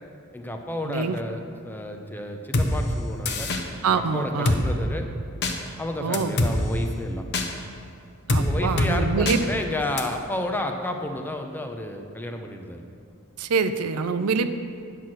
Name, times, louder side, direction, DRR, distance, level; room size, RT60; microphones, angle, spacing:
voice 1, 0.3-3.5 3.9-5.1 5.8-7.2 8.4-12.9, left 1 dB, 10° left, 4 dB, 0.6 m, -31 dB
voice 2, 0.8-1.2 3.8-4.6 6.0-6.4 8.3-9.4 13.4-14.6, right 5 dB, 75° right, 10 dB, 0.5 m, -25 dB
Drum kit, 2.5-2.7 3.3-3.6 4.5-4.6 5.4-5.5 6.1-6.5 7.3-7.5 8.3-8.4 8.8-8.9 9.3-9.4 10.0-10.1, left 2 dB, 50° left, 0.8 m, -22 dB
9.2 x 6.0 x 6.3 m, 2.4 s
head